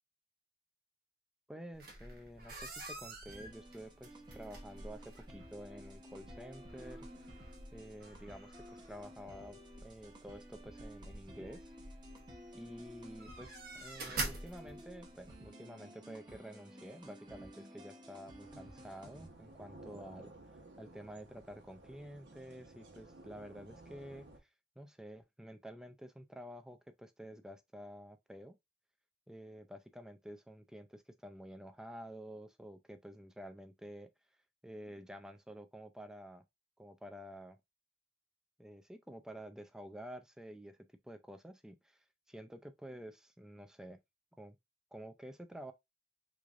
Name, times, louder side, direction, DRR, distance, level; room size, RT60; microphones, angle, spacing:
voice 1, 1.5-7.4 7.7-11.7 12.5-20.3 20.8-24.3 24.8-28.5 29.3-34.1 34.6-36.4 36.8-37.6 38.6-40.8 41.0-44.0 44.4-44.6 44.9-45.7, equal, 5° right, 0.3 m, -50 dB
sound 1, 1.7-15.3, right 2 dB, 55° right, 0.9 m, -48 dB
sound 2, 3.3-19.3, equal, 25° right, 0.8 m, -54 dB
sound 3, 18.4-24.4, right 2 dB, 90° right, 1.0 m, -55 dB
3.6 x 3.2 x 2.4 m
head